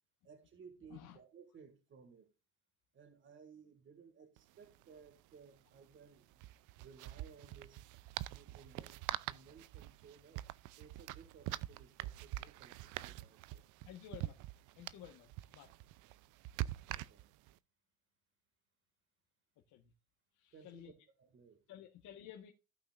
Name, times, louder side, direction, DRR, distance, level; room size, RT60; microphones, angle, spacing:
voice 1, 0.2-2.3 2.9-6.4 6.8-8.0 8.3-10.4 10.8-13.6 16.9-17.2 20.5-20.9 21.2-21.6, right 6 dB, 35° right, 2.3 m, -59 dB
sound 1, 4.4-4.5 4.7-4.8 6.3-17.5, right 16 dB, 60° right, 0.7 m, -45 dB
voice 2, 13.8-14.4 14.7-15.7 19.7-19.9 20.3-20.9 21.7-22.5, left 11 dB, 55° left, 1.6 m, -53 dB
16.5 x 5.7 x 2.6 m
cardioid pair, 130°, 35 cm